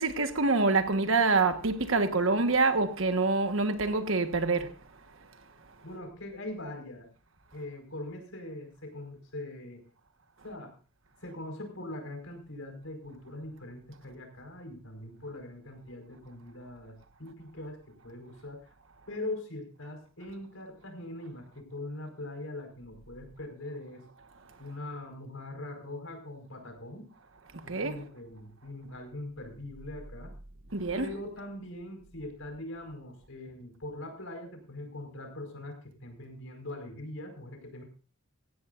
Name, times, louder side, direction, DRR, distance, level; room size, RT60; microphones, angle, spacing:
voice 1, 0.0-4.7 27.5-27.9 30.7-31.1, right 3 dB, 70° right, 1.4 m, -26 dB
voice 2, 5.8-7.1 7.5-9.8 10.4-10.7 11.2-18.6 19.1-24.0 24.6-27.1 27.6-30.3 30.9-37.8, left 1 dB, 75° left, 5.0 m, -42 dB
17.5 x 15.5 x 2.5 m
head